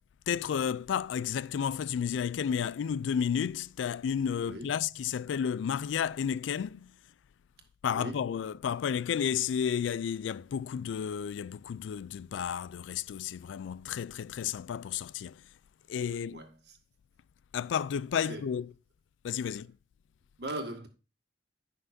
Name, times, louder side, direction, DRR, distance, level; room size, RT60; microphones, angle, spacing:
voice 1, 0.3-6.9 7.8-15.4 15.9-16.4 17.5-18.7 19.2-19.7, left 8 dB, 90° left, 0.3 m, -32 dB
voice 2, 4.4-4.8 7.9-8.3 16.3-16.8 18.2-18.5 20.4-20.9, right 1 dB, 60° right, 1.7 m, -40 dB
15.0 x 5.8 x 2.6 m
head